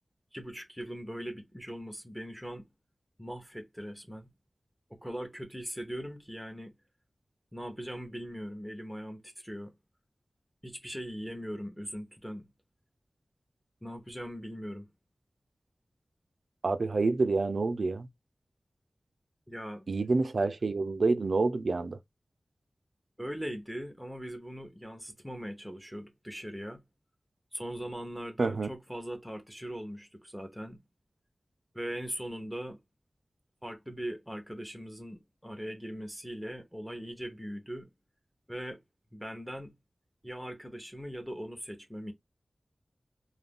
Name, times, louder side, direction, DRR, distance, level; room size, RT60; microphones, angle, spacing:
voice 1, 0.3-2.6 3.2-4.3 4.9-6.7 7.5-9.7 10.6-12.5 13.8-14.9 19.5-19.9 23.2-26.8 27.5-30.8 31.7-32.8 33.6-37.9 38.5-38.8 39.1-39.7 40.2-42.1, equal, 5° left, 0.7 m, -40 dB
voice 2, 16.6-18.1 19.9-22.0 28.4-28.7, right 3 dB, 75° right, 0.4 m, -28 dB
2.4 x 2.2 x 3.4 m
wide cardioid pair, 75°, 0 cm